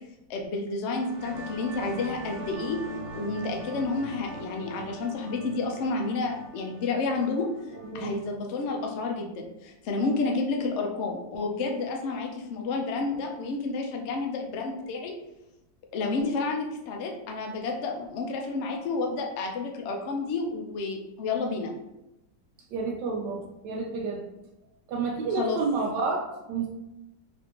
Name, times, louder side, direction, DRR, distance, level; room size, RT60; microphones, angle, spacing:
voice 1, 0.3-2.8 3.1-7.5 7.9-15.1 15.9-21.7 25.4-25.6, left 3 dB, 85° left, 2 dB, 0.6 m, -30 dB
sound 1, 0.9-8.2, right 1 dB, 45° right, 0.5 m, -41 dB
voice 2, 22.7-24.2 24.9-26.7, right 4 dB, 85° right, -1 dB, 1.3 m, -30 dB
4.1 x 2.6 x 2.8 m, 0.93 s
omnidirectional pair, 1.9 m